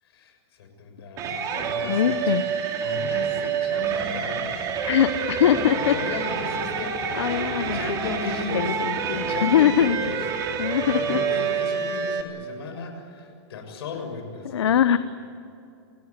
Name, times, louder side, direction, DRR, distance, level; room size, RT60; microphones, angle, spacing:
voice 1, 0.0-2.5 2.8-4.6 5.3-10.2 10.6-14.8, left 4 dB, 65° left, 5 dB, 6.6 m, -36 dB
sound 1, 1.2-12.2, right 6 dB, 25° right, 2.5 m, -28 dB
voice 2, 1.5-2.4 4.9-6.2 7.1-10.0 10.6-11.2 14.4-15.0, left 9 dB, 80° left, 12 dB, 1.0 m, -23 dB
27.5 x 17.0 x 9.8 m, 2.6 s
hypercardioid pair, 155°, 14 cm